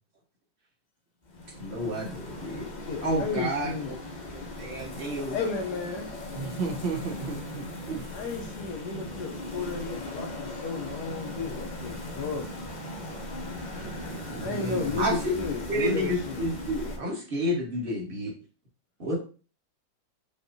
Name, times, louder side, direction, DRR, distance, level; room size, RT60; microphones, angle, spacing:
sound 1, 1.3-17.0, left 1 dB, 40° left, 0.6 m, -38 dB
voice 1, 1.6-2.7 3.0-4.0 4.3-5.4 15.0-15.3 15.7-18.3 19.0-19.1, equal, 30° right, -3 dB, 1.3 m, -30 dB
voice 2, 2.8-3.9 5.3-6.1 8.1-12.5 14.4-16.4, left 4 dB, 70° left, 3 dB, 1.1 m, -33 dB
voice 3, 6.3-8.0 13.8-15.0, right 4 dB, 80° right, 0 dB, 1.8 m, -34 dB
5.2 x 3.0 x 2.6 m, 0.36 s
omnidirectional pair, 2.0 m